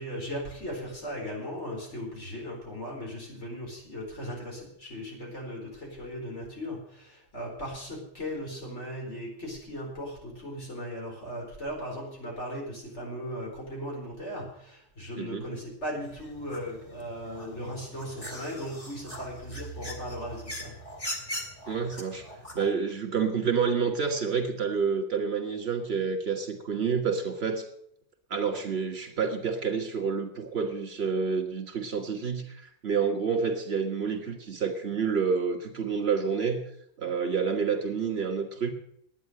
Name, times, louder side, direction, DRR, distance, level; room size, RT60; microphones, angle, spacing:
voice 1, 0.0-20.8, equal, 70° left, -1 dB, 4.7 m, -37 dB
voice 2, 15.2-15.5 21.7-22.3 22.5-27.6 28.3-36.7 37.0-38.7, right 6 dB, 55° right, 5 dB, 2.0 m, -28 dB
sound 1, 16.0-22.7, equal, 25° left, 2.0 m, -41 dB
11.0 x 9.4 x 7.8 m, 0.70 s
omnidirectional pair, 1.3 m